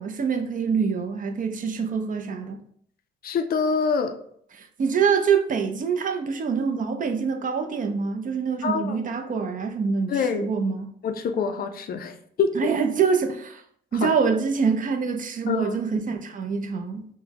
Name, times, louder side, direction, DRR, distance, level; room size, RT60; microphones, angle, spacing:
voice 1, 0.0-2.6 4.5-10.9 12.5-13.6 13.9-17.1, right 6 dB, 40° right, 6 dB, 0.5 m, -25 dB
voice 2, 3.2-4.2 8.6-9.0 10.1-10.5 11.0-12.5 14.0-14.1 15.5-15.8, left 5 dB, 50° left, 8 dB, 0.4 m, -25 dB
3.8 x 2.1 x 2.8 m, 0.65 s
cardioid pair, 90°, 20 cm